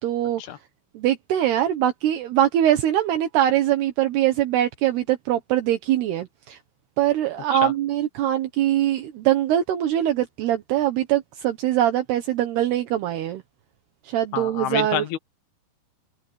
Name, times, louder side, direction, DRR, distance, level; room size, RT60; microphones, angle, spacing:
voice 1, 0.0-0.4 0.9-6.6 7.0-13.4 14.0-15.1, right 12 dB, 75° right, 3.2 m, -22 dB
voice 2, 14.3-15.2, left 12 dB, 70° left, 3.1 m, -28 dB
open air
omnidirectional pair, 4.9 m